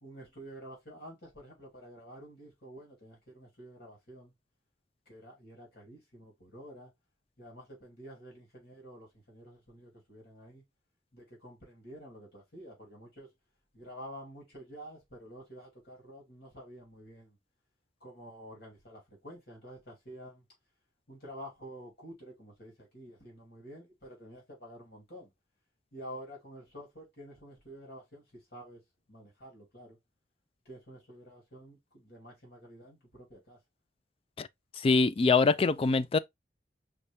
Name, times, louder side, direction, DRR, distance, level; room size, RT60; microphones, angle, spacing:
voice 1, 0.0-4.3 5.1-6.9 7.4-10.6 11.1-13.3 13.7-17.4 18.0-20.4 21.1-25.3 25.9-28.8 29.1-30.0 30.6-33.6, equal, 55° left, 2.6 m, -49 dB
voice 2, 34.8-36.2, left 4 dB, 30° left, 0.3 m, -24 dB
5.2 x 2.8 x 3.4 m
head